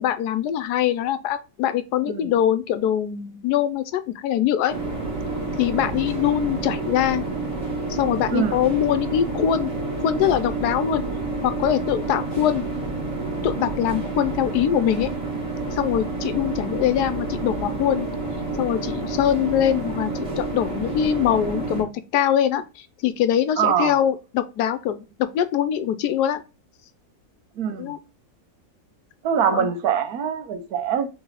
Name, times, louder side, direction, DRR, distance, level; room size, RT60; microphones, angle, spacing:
voice 1, 0.0-4.8 5.6-7.2 7.9-9.7 10.0-11.0 11.4-12.6 13.4-15.1 15.7-18.1 18.6-26.4 27.8-28.0 29.5-29.7, left 10 dB, 80° left, 1.1 m, -23 dB
sound 1, 4.7-21.8, right 3 dB, 20° right, 1.6 m, -29 dB
voice 2, 8.3-8.6 23.6-24.0 27.6-27.9 29.2-31.1, right 8 dB, 70° right, 1.2 m, -23 dB
3.9 x 3.4 x 3.9 m
omnidirectional pair, 1.7 m